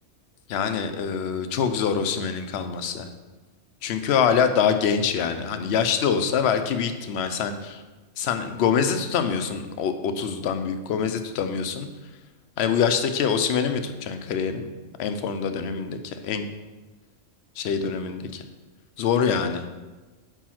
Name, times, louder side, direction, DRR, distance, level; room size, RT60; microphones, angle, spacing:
voice 1, 0.5-3.1 3.8-7.8 8.2-11.9 12.6-14.7 15.0-16.5 17.6-18.4 19.0-19.6, left 7 dB, 65° left, 8 dB, 0.8 m, -25 dB
5.0 x 4.6 x 5.8 m, 1.2 s
omnidirectional pair, 1.3 m